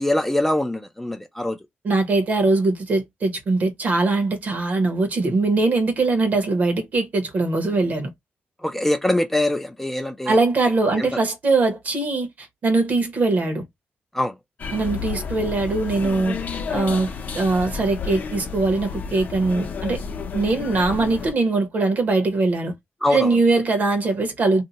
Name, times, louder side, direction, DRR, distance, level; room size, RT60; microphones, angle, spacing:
voice 1, 0.0-1.6 8.6-10.4 11.0-11.1 14.1-14.3 23.0-23.3, left 1 dB, 5° left, 0.4 m, -23 dB
voice 2, 1.8-8.1 10.3-13.6 14.7-16.4 16.7-17.1 17.3-20.0 20.3-22.7 23.1-24.6, right 3 dB, 45° right, 1.0 m, -21 dB
sound 1, 14.6-21.3, left 5 dB, 45° left, 0.6 m, -31 dB
2.7 x 2.2 x 4.0 m
wide cardioid pair, 180°, 4 cm